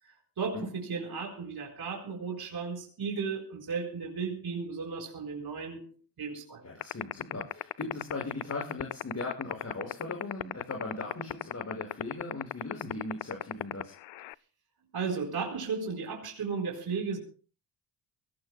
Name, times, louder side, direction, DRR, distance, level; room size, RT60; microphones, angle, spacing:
voice 1, 0.0-6.6 14.9-17.2, right 5 dB, 60° right, 4.4 m, -35 dB
voice 2, 6.6-13.9, left 2 dB, 35° left, 6.1 m, -39 dB
sound 1, 6.8-14.3, left 18 dB, 85° left, 0.6 m, -32 dB
23.5 x 17.5 x 2.2 m
cardioid pair, 85°, 43 cm